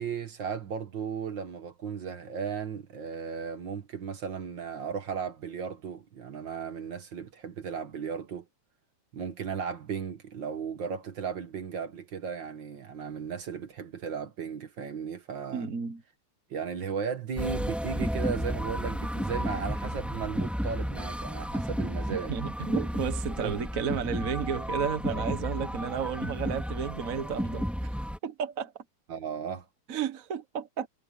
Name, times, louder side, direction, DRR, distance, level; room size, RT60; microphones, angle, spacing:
voice 1, 0.0-8.5 9.1-15.7 16.5-22.3 23.4-23.5 29.1-29.7, right 6 dB, 60° right, 2.0 m, -35 dB
voice 2, 15.5-16.0 22.1-27.9 28.2-28.7 29.9-30.9, right 7 dB, 40° right, 1.7 m, -32 dB
sound 1, 17.4-28.2, equal, ahead, 4.3 m, -32 dB
omnidirectional pair, 2.4 m